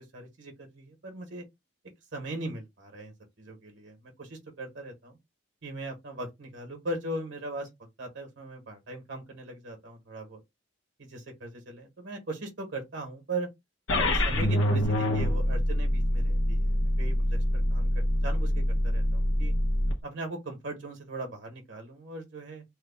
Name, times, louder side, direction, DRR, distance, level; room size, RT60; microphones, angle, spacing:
voice 1, 0.1-1.4 2.1-5.2 5.6-7.7 8.0-10.4 11.0-13.5 13.9-19.5 20.0-22.6, right 2 dB, 70° right, 1.2 m, -39 dB
sound 1, 13.9-19.9, left 1 dB, 85° left, 0.9 m, -25 dB
3.2 x 2.3 x 3.5 m
head